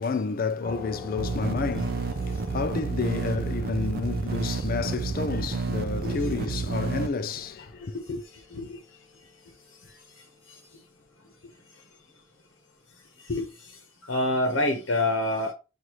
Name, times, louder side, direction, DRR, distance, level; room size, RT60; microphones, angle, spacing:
voice 1, 0.0-8.2, left 4 dB, 45° left, 0.4 m, -30 dB
sound 1, 0.6-9.8, left 4 dB, 15° left, 1.5 m, -45 dB
sound 2, 1.2-7.1, right 4 dB, 45° right, 0.4 m, -30 dB
voice 2, 6.0-6.4 8.5-8.8 13.3-13.8 14.0-15.5, left 1 dB, 75° left, 0.9 m, -27 dB
6.3 x 2.5 x 2.9 m
head